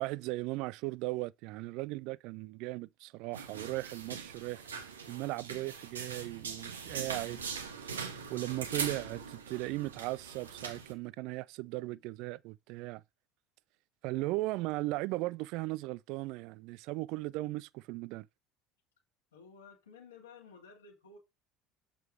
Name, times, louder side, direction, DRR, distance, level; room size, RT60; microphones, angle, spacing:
voice 1, 0.0-4.6 5.1-7.4 7.8-8.0 8.3-13.0 14.0-18.3, right 20 dB, 55° right, 0.3 m, -37 dB
sound 1, 3.3-10.9, right 6 dB, 75° right, 1.3 m, -41 dB
voice 2, 19.3-21.2, left 5 dB, 75° left, 2.7 m, -54 dB
7.7 x 5.1 x 4.4 m
figure-of-eight pair, 65°, 0 cm